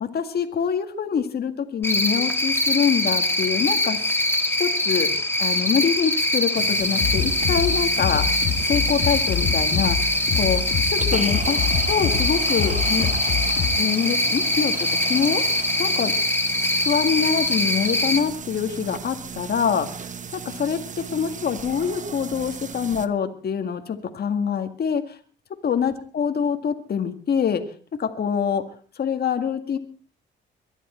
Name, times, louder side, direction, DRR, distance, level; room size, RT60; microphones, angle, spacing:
voice 1, 0.0-4.0 4.6-5.1 5.4-8.3 8.6-13.1 13.8-15.4 15.8-16.1 16.9-20.0 20.3-25.2 25.6-27.6 28.0-28.6 29.0-29.8, left 7 dB, 55° left, 6 dB, 1.9 m, -25 dB
Cricket, 1.8-18.2, left 1 dB, 10° left, 2.1 m, -23 dB
sound 1, 6.5-23.1, right 6 dB, 40° right, 1.0 m, -36 dB
sound 2, 7.0-13.7, left 7 dB, 80° left, 2.9 m, -26 dB
23.0 x 11.0 x 4.4 m, 0.41 s
cardioid pair, 90°, 20 cm